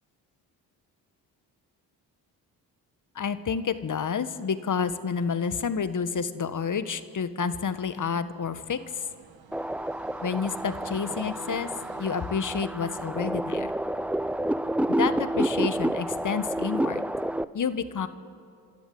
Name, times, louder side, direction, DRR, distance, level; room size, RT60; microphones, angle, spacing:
voice 1, 3.1-9.0 10.2-11.7 12.0-13.7 15.0-17.0 17.5-18.1, left 6 dB, 45° left, 12 dB, 1.4 m, -29 dB
Train, 7.9-12.8, right 6 dB, 60° right, 1.8 m, -50 dB
sound 1, 9.5-17.4, right 1 dB, 5° right, 0.7 m, -29 dB
29.0 x 13.0 x 9.4 m, 2.3 s
supercardioid pair, 50°, 42 cm